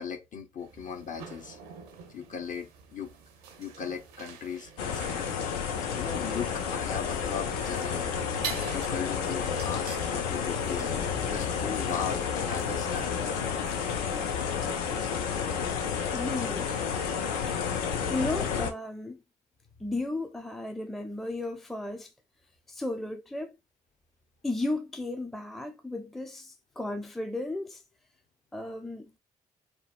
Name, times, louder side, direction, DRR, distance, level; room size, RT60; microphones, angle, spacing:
voice 1, 0.0-1.6 2.1-3.1 3.6-5.3 5.8-8.2 8.7-11.0 11.3-13.3, left 7 dB, 45° left, 0.7 m, -37 dB
sound 1, 0.6-14.5, right 7 dB, 80° right, 0.5 m, -47 dB
sound 2, 4.8-18.7, left 6 dB, 80° left, 0.4 m, -31 dB
voice 2, 16.1-16.7 17.5-17.6 18.1-19.2 19.8-22.1 22.7-23.5 24.4-27.8 28.5-29.2, left 2 dB, ahead, 0.4 m, -34 dB
2.6 x 2.2 x 2.4 m
hypercardioid pair, 40°, 19 cm